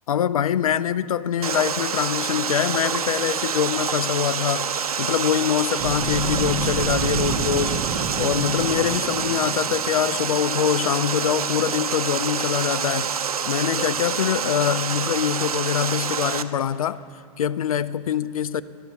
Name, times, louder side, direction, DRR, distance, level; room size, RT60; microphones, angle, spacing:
voice 1, 0.1-7.8 8.2-13.1 13.5-17.0 17.4-18.6, left 9 dB, 70° left, 0.4 m, -24 dB
Water, 1.4-16.4, right 7 dB, 80° right, 0.5 m, -27 dB
sound 1, 5.8-10.7, right 6 dB, 40° right, 0.8 m, -30 dB
10.5 x 9.2 x 7.7 m
figure-of-eight pair, 95°, 19 cm